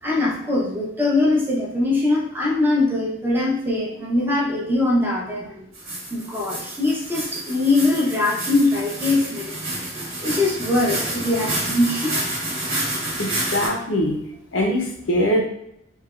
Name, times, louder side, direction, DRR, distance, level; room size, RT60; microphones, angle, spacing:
voice 1, 0.0-5.6 6.1-9.5 10.2-12.1, left 2 dB, 10° right, -4 dB, 0.6 m, -22 dB
sound 1, 5.7-13.7, right 1 dB, 80° right, 1.2 m, -29 dB
voice 2, 13.2-14.2 14.5-15.4, equal, 70° left, 1 dB, 0.6 m, -22 dB
3.2 x 2.8 x 2.3 m, 0.80 s
head